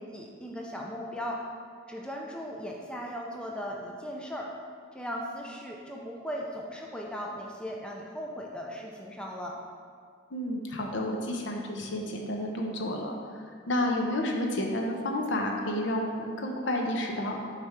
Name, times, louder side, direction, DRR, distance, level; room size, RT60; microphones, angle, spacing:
voice 1, 0.1-1.4 1.9-4.5 4.9-9.6, equal, 5° left, -1 dB, 0.4 m, -37 dB
voice 2, 10.3-17.4, left 1 dB, 70° left, 1 dB, 0.7 m, -31 dB
6.4 x 3.3 x 4.7 m, 2.2 s
head